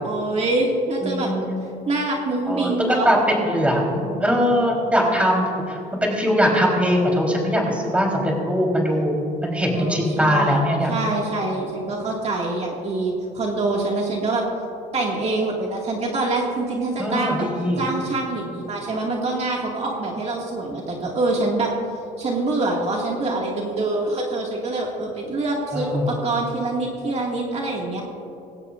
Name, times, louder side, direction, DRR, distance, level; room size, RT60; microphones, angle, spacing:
voice 1, 0.0-1.3 1.9-3.1 9.7-10.6 10.9-14.5 14.9-17.5 17.8-21.7 22.2-28.0, right 2 dB, 40° right, -1 dB, 2.0 m, -25 dB
voice 2, 1.0-1.4 2.5-9.1 9.4-10.9 17.0-17.8 25.7-26.1, equal, 5° right, -1 dB, 3.7 m, -21 dB
19.5 x 16.5 x 2.5 m, 2.8 s
cardioid pair, 110°, 17 cm